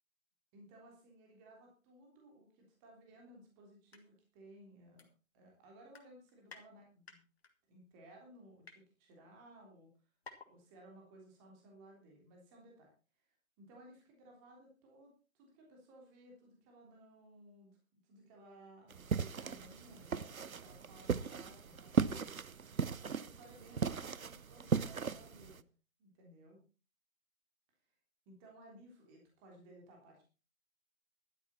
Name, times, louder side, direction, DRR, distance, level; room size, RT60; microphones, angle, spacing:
voice 1, 0.5-5.1 5.3-7.2 7.7-9.9 10.5-12.9 13.6-22.4 22.7-25.6 26.0-26.6 28.2-30.2, right 1 dB, 15° right, 0 dB, 3.3 m, -59 dB
sound 1, 3.7-4.0 4.4-4.5 5.0-5.5 5.8-6.6 7.0-7.5 8.1-8.8 9.5-9.6 9.8-9.9 10.2-10.5 10.9-11.0, left 4 dB, 50° left, 2.5 m, -55 dB
sound 2, 18.9-25.6, right 6 dB, 80° right, 0.9 m, -37 dB
13.0 x 12.5 x 4.3 m, 0.34 s
figure-of-eight pair, 160°, 41 cm